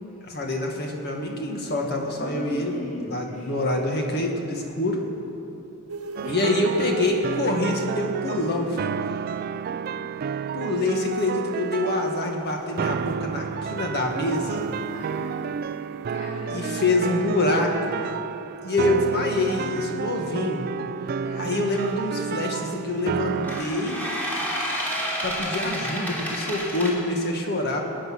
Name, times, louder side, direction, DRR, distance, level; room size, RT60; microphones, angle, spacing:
voice 1, 0.3-5.0 6.3-9.2 10.5-14.7 16.5-18.1 18.6-20.6 21.4-23.9 25.2-27.8, left 2 dB, 50° left, 1 dB, 1.9 m, -26 dB
voice 2, 2.1-3.6 6.2-6.8 9.2-10.0 14.9-15.5 16.1-17.1 20.4-20.8 21.2-21.6 23.5-24.2, equal, 35° left, -4 dB, 2.8 m, -40 dB
sound 1, 5.9-8.5 12.0-17.2, right 3 dB, 85° right, 1.0 m, -41 dB
sound 2, 6.2-23.6, right 7 dB, 45° right, 0.3 m, -31 dB
sound 3, 21.7-22.0 23.3-26.9, equal, 10° left, 3.0 m, -30 dB
18.5 x 9.4 x 6.3 m, 2.8 s
head